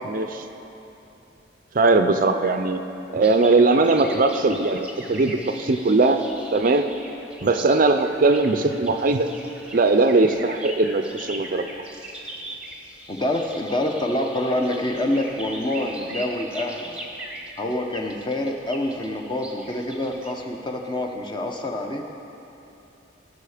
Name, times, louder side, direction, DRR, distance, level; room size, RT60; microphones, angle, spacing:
voice 1, 0.0-0.4 1.7-2.8 3.1-6.2 6.5-6.9 7.4-9.3 9.7-11.6, right 3 dB, 45° right, 8 dB, 0.5 m, -19 dB
sound 1, 3.2-20.3, right 1 dB, 5° right, 1.0 m, -40 dB
voice 2, 13.1-17.0 17.6-22.0, left 1 dB, 25° left, 3 dB, 0.8 m, -26 dB
18.0 x 6.3 x 5.0 m, 2.9 s
head